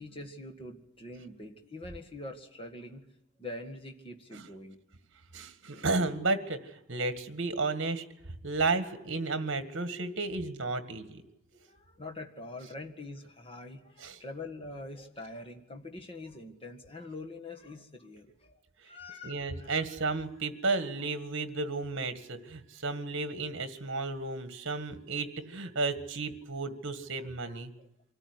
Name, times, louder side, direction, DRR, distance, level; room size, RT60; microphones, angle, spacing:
voice 1, 0.0-3.0 3.4-4.8 11.7-19.8 27.2-27.9, left 2 dB, 25° left, 4 dB, 1.8 m, -44 dB
voice 2, 5.3-11.2 14.0-14.2 19.2-27.7, right 3 dB, 55° right, 10 dB, 1.8 m, -33 dB
25.0 x 13.5 x 9.7 m, 0.89 s
head